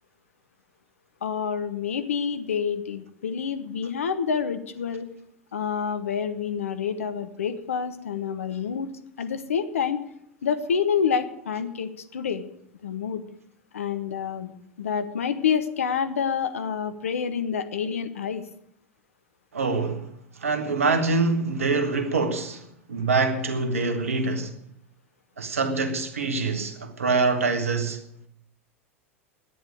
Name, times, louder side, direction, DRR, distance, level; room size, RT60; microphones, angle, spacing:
voice 1, 1.2-5.1 5.5-8.9 9.2-10.0 10.4-12.4 12.8-13.2 13.7-14.5 14.8-18.4, left 7 dB, 80° left, 1.1 m, -28 dB
voice 2, 19.5-20.1 20.4-24.6 25.4-28.0, right 3 dB, 80° right, 1.6 m, -25 dB
10.5 x 9.8 x 8.6 m
hypercardioid pair, 85°, 7 cm